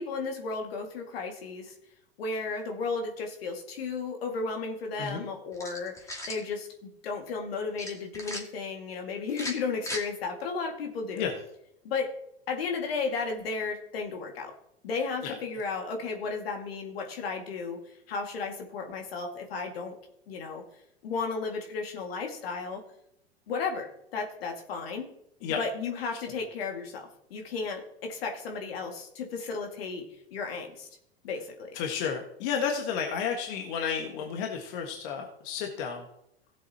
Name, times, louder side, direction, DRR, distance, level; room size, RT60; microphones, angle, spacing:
voice 1, 0.0-1.8 2.2-11.3 11.8-12.1 12.5-14.5 14.8-20.0 20.3-20.6 21.0-22.8 23.5-25.1 25.5-30.9 31.2-31.7, left 4 dB, 75° left, 3 dB, 2.1 m, -34 dB
sound 1, 5.5-6.4 7.8-8.4 9.3-10.0, left 1 dB, 10° left, 2.0 m, -37 dB
voice 2, 31.8-36.0, left 7 dB, 55° left, 2 dB, 1.6 m, -32 dB
16.5 x 7.6 x 2.9 m, 0.77 s
hypercardioid pair, 95°, 30 cm